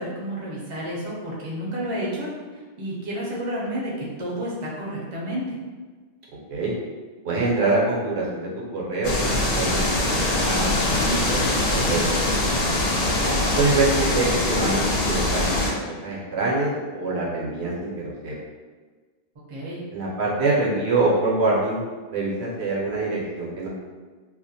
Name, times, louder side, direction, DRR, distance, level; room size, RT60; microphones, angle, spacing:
voice 1, 0.0-5.6 19.5-19.8, equal, 40° right, -5 dB, 0.5 m, -31 dB
voice 2, 7.2-9.8 10.1-10.7 11.0-11.4 11.7-12.0 13.2-18.3 19.9-23.7, right 2 dB, 80° right, -5 dB, 0.9 m, -25 dB
sound 1, 9.0-15.7, left 1 dB, 70° left, 0.8 m, -23 dB
2.4 x 2.1 x 2.7 m, 1.4 s
omnidirectional pair, 1.1 m